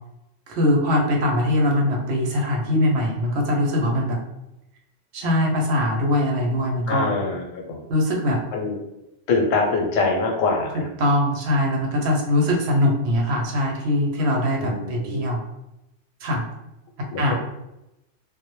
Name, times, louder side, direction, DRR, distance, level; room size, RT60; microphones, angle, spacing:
voice 1, 0.5-4.2 5.1-7.1 7.9-8.4 11.0-15.4 16.2-16.5 17.2-17.3, left 1 dB, 65° right, 0 dB, 0.8 m, -22 dB
voice 2, 6.9-7.8 8.5-8.8 9.3-10.9 14.5-15.2 17.1-17.3, left 3 dB, 85° left, 1 dB, 1.0 m, -24 dB
2.1 x 2.0 x 2.9 m, 0.90 s
omnidirectional pair, 1.3 m